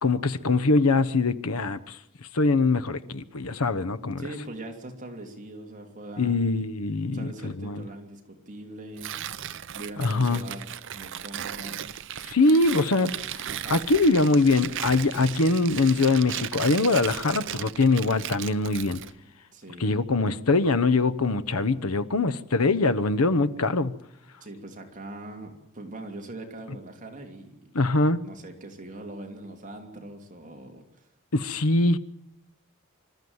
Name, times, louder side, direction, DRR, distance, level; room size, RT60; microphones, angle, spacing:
voice 1, 0.0-2.0 2.3-4.2 6.2-7.9 10.0-10.4 12.2-13.4 13.7-19.0 19.8-24.0 27.7-28.2 31.3-32.0, left 3 dB, 80° left, 1.0 m, -23 dB
voice 2, 4.2-6.4 7.1-9.2 9.7-10.6 10.9-11.9 13.5-13.8 19.5-19.9 24.4-27.7 28.2-31.1, right 1 dB, 35° right, 2.8 m, -41 dB
Tearing, 9.0-19.2, right 10 dB, 55° right, 0.7 m, -36 dB
26.0 x 13.5 x 8.0 m
head